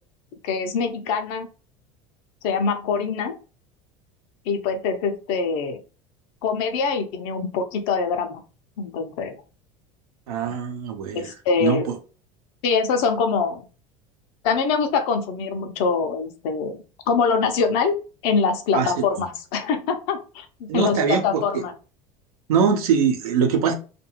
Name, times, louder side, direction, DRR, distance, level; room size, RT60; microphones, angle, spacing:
voice 1, 0.4-1.5 2.4-3.4 4.5-5.8 6.4-8.4 8.8-9.4 11.1-11.9 12.6-13.7 14.4-16.8 17.1-18.0 18.2-21.7, left 5 dB, 70° left, 6 dB, 0.7 m, -24 dB
voice 2, 10.3-11.3 11.6-12.0 18.7-19.0 20.7-21.6 22.5-23.7, right 6 dB, 90° right, 4 dB, 0.7 m, -22 dB
2.5 x 2.4 x 3.0 m, 0.34 s
supercardioid pair, 95°, 18 cm